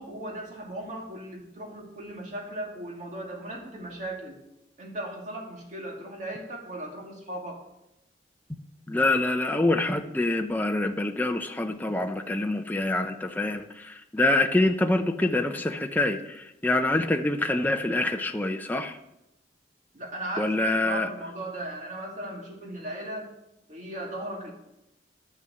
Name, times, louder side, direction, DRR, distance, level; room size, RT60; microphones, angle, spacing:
voice 1, 0.0-4.4 4.8-7.6 19.9-23.3 23.7-24.5, right 1 dB, 45° right, 0 dB, 2.3 m, -37 dB
voice 2, 8.9-19.0 20.4-21.1, left 2 dB, 10° left, 5 dB, 0.6 m, -26 dB
10.5 x 6.6 x 7.8 m, 0.89 s
head